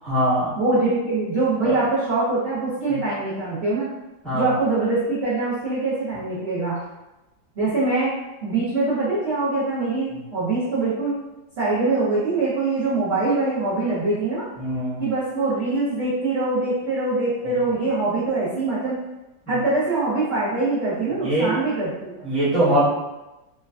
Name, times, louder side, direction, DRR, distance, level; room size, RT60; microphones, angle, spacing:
voice 1, 0.0-0.5 1.6-1.8 2.9-3.0 4.2-4.5 14.6-15.0 17.4-17.5 19.5-19.6 21.2-21.5 22.2-22.8, right 1 dB, ahead, -12 dB, 0.8 m, -22 dB
voice 2, 0.6-3.9 4.3-6.8 7.6-8.1 8.4-11.2 11.6-14.4 15.0-19.0 19.5-22.1, right 3 dB, 55° right, -11 dB, 0.7 m, -23 dB
3.1 x 2.2 x 2.3 m, 1.0 s
omnidirectional pair, 1.9 m